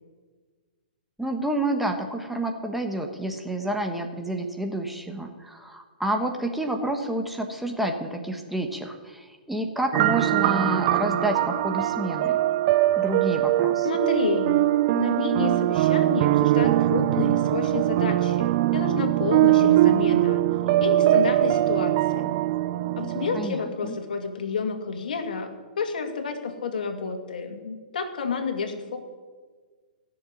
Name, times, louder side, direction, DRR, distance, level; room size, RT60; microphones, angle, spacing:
voice 1, 1.2-12.4 13.0-13.9 23.3-24.0, right 1 dB, 5° right, 3 dB, 1.2 m, -29 dB
sound 1, 9.9-23.5, right 14 dB, 40° right, 0.5 m, -22 dB
voice 2, 13.8-20.4 20.8-22.3 23.0-29.0, left 5 dB, 65° left, 5 dB, 2.3 m, -30 dB
17.0 x 7.0 x 9.7 m, 1.5 s
figure-of-eight pair, 120°, 5 cm